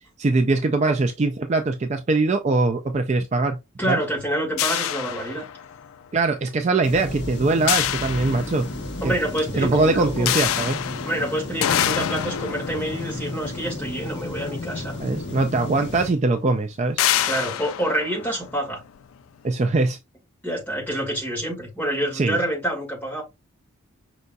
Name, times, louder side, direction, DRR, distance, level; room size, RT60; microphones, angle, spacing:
voice 1, 0.2-3.6 3.8-4.0 6.1-8.7 9.0-9.1 9.6-10.8 15.0-17.0 19.4-20.0 22.1-22.4, right 3 dB, 35° right, 0.4 m, -22 dB
voice 2, 3.8-5.5 9.0-10.3 11.0-15.0 17.2-18.8 20.4-23.2, right 1 dB, 10° left, 2.0 m, -27 dB
sound 1, 4.6-5.9 7.7-9.0 10.3-14.7 15.6-15.7 16.1-16.3 17.0-19.0, left 11 dB, 90° left, 0.4 m, -27 dB
sound 2, 6.8-16.1, left 2 dB, 55° left, 1.3 m, -33 dB
5.4 x 4.0 x 2.3 m
head